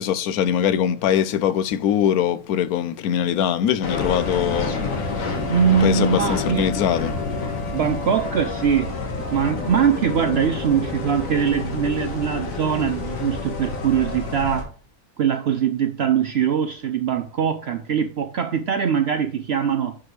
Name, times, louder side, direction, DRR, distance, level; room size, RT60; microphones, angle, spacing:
voice 1, 0.0-4.8 5.8-7.2, left 9 dB, 75° left, 1.1 m, -22 dB
sound 1, 3.8-14.6, left 3 dB, 60° left, 1.8 m, -28 dB
voice 2, 5.5-6.7 7.7-8.9 9.3-14.7 15.2-20.0, right 8 dB, 70° right, 0.6 m, -22 dB
9.4 x 4.8 x 3.2 m
omnidirectional pair, 1.6 m